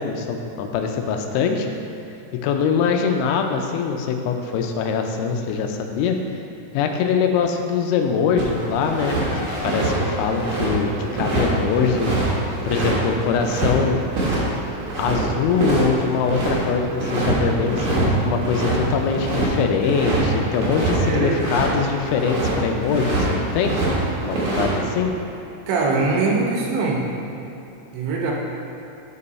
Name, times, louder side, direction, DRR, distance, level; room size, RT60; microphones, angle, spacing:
voice 1, 0.0-1.7 2.4-6.2 6.7-12.2 12.6-14.0 15.0-23.8 24.2-25.1, left 6 dB, 85° left, 4 dB, 2.9 m, -23 dB
sound 1, 8.4-9.3 9.5-13.7 14.1-14.4 14.6-16.6 17.0-17.4 17.6-18.1 18.3-21.7 22.0-22.5 22.9-23.9 24.2-24.7, right 3 dB, 65° right, 1.9 m, -24 dB
Race car auto racing, 8.9-13.9, right 1 dB, 60° left, 3.0 m, -37 dB
voice 2, 21.0-21.4 25.7-27.0 27.9-28.3, right 3 dB, 80° right, -2 dB, 3.2 m, -22 dB
8.6 x 5.4 x 4.1 m, 2.9 s
omnidirectional pair, 5.4 m